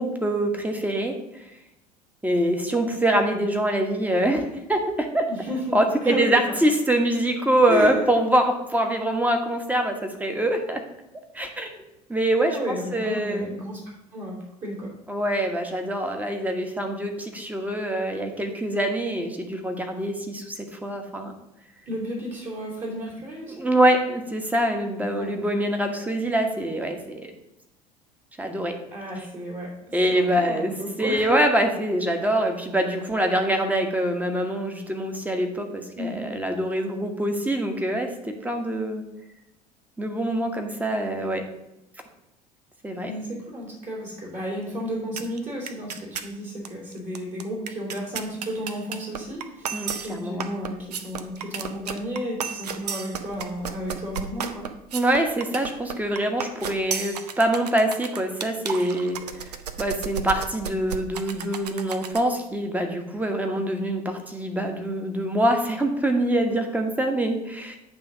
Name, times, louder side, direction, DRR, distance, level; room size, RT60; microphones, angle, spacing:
voice 1, 0.0-1.4 2.2-5.2 5.7-10.8 11.3-11.7 12.1-13.6 15.1-21.3 23.5-27.3 28.4-28.7 29.9-30.7 31.0-39.0 40.0-41.4 42.8-43.1 49.7-50.5 54.9-59.2 59.8-67.8, right 1 dB, 10° right, 4 dB, 1.4 m, -24 dB
voice 2, 5.3-6.6 7.7-8.0 12.4-13.8 14.1-14.9 21.9-23.6 25.2-25.3 28.9-29.7 30.1-31.4 35.9-36.2 43.0-54.6, equal, 35° right, -4 dB, 3.1 m, -32 dB
Cabbage Pancake Beat, 45.2-45.4 45.7-46.3 46.6-46.7 46.9-62.3, right 7 dB, 80° right, 0.6 m, -34 dB
9.1 x 3.5 x 6.1 m, 0.88 s
figure-of-eight pair, 65°, 21 cm